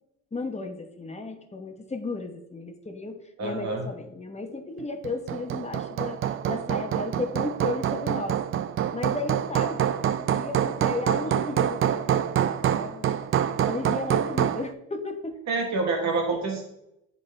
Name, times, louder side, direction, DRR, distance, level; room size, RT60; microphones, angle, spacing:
voice 1, 0.3-6.2 6.5-8.4 8.9-13.1 13.7-15.4, left 3 dB, 20° left, 5 dB, 1.0 m, -34 dB
voice 2, 3.4-3.9 15.5-16.6, right 3 dB, 65° right, 2 dB, 1.2 m, -27 dB
Hammer, 5.0-14.7, right 10 dB, 45° right, 0.4 m, -26 dB
10.5 x 3.9 x 3.3 m, 0.83 s
cardioid pair, 90°, 30 cm